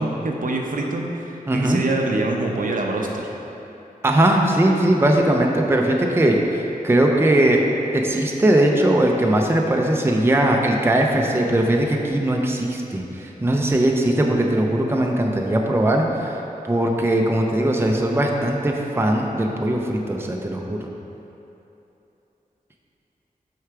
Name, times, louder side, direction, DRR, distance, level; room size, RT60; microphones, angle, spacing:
voice 1, 0.0-3.3, right 2 dB, 65° right, 0 dB, 0.7 m, -25 dB
voice 2, 1.5-1.8 4.0-7.6 7.9-16.4 16.7-20.9, right 1 dB, 15° right, 0 dB, 0.5 m, -20 dB
6.5 x 4.8 x 4.7 m, 3.0 s
wide cardioid pair, 80°, 15 cm